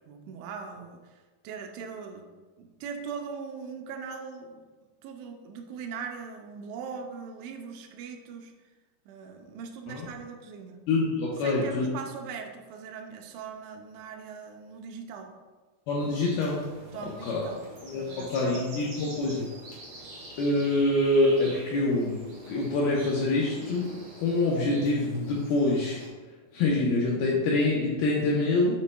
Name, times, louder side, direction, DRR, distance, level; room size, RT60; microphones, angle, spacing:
voice 1, 0.0-2.3 2.6-4.6 5.0-8.5 9.1-10.8 11.4-15.3 16.9-17.7 18.0-19.0, right 5 dB, 85° right, 3 dB, 3.1 m, -40 dB
voice 2, 10.9-11.9 15.9-16.6 17.3-17.4 17.8-19.5 20.4-23.9 24.2-26.0 26.5-28.8, left 2 dB, 75° left, -4 dB, 2.3 m, -25 dB
sound 1, 16.0-26.1, right 1 dB, 45° right, 2.1 m, -45 dB
8.2 x 7.4 x 2.2 m, 1.3 s
omnidirectional pair, 5.3 m